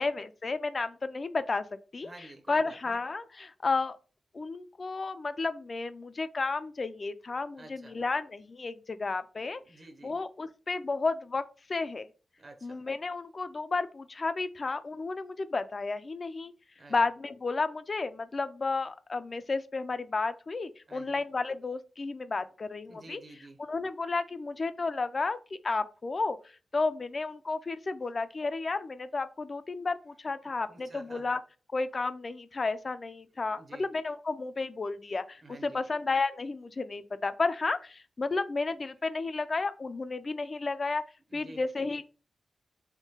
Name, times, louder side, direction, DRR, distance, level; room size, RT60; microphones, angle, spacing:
voice 1, 0.0-1.7 1.9-2.1 2.5-4.0 4.3-9.6 10.0-11.4 11.7-12.1 12.6-16.5 16.9-23.2 23.6-25.4 25.6-26.4 26.7-31.4 31.7-41.0 41.3-42.1, left 3 dB, 50° left, 0.3 m, -32 dB
voice 2, 2.0-3.0 7.6-8.0 9.6-10.2 12.4-12.8 16.8-17.0 20.9-21.2 22.9-23.6 30.7-31.3 33.5-33.9 35.4-35.8 41.3-41.6, right 2 dB, 50° right, 0.7 m, -50 dB
3.6 x 2.7 x 2.7 m
cardioid pair, 60°, 0 cm